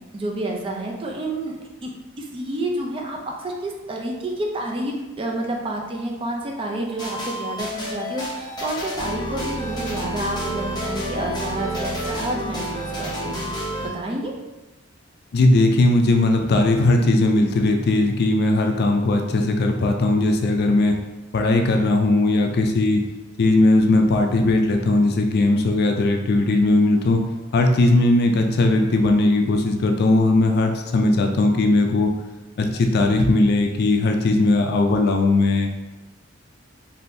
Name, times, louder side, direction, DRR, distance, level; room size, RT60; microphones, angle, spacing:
voice 1, 0.1-1.6 1.8-1.9 2.2-14.3, right 1 dB, 25° right, 0 dB, 0.4 m, -29 dB
sound 1, 7.0-13.9, equal, 20° left, 0.7 m, -29 dB
voice 2, 15.3-21.0 21.3-23.0 23.4-27.2 27.5-32.1 32.6-35.7, left 2 dB, 50° left, 3 dB, 0.3 m, -18 dB
3.4 x 2.6 x 2.6 m, 1.1 s
head